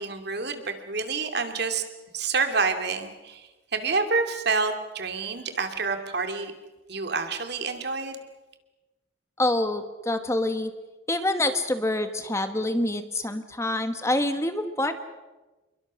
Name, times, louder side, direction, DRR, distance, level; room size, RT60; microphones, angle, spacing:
voice 1, 0.0-1.8 2.1-6.5 6.9-8.2, right 4 dB, 55° right, 6 dB, 2.5 m, -28 dB
voice 2, 9.4-10.7 11.1-15.0, left 1 dB, 15° left, 8 dB, 1.2 m, -26 dB
28.0 x 22.5 x 6.3 m, 1.2 s
head